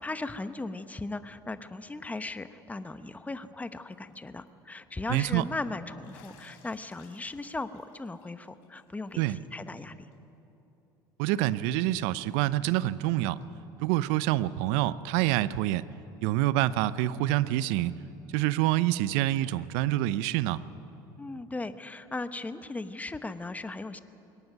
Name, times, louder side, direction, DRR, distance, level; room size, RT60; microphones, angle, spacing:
voice 1, 0.0-10.0 21.2-24.0, left 2 dB, 10° left, 11 dB, 1.1 m, -37 dB
Bathtub (filling or washing), 3.7-4.1 4.5-4.6 6.0-9.3 9.7-9.8 10.1-10.2 11.6-11.7 13.4-13.5, left 6 dB, 65° left, 4.4 m, -60 dB
voice 2, 5.1-5.4 9.2-9.4 11.2-13.4 13.8-15.8 16.2-17.9 18.3-20.6, right 15 dB, 65° right, 17 dB, 0.7 m, -26 dB
21.5 x 18.5 x 9.2 m, 3.0 s
hypercardioid pair, 70°, 12 cm